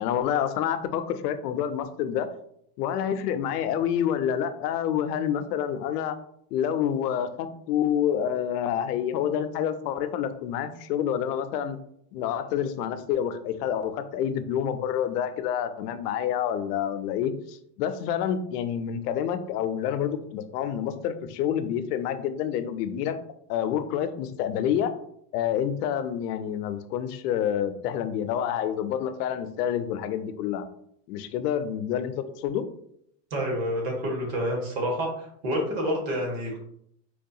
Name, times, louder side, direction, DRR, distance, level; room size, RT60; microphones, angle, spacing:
voice 1, 0.0-2.3 2.8-6.2 6.5-11.8 12.1-23.2 23.5-24.9 25.3-30.7 31.1-32.6, left 9 dB, 85° left, 10 dB, 0.6 m, -28 dB
voice 2, 33.3-36.6, equal, 55° right, 0 dB, 1.5 m, -28 dB
4.4 x 2.3 x 2.7 m, 0.71 s
supercardioid pair, 160°, 46 cm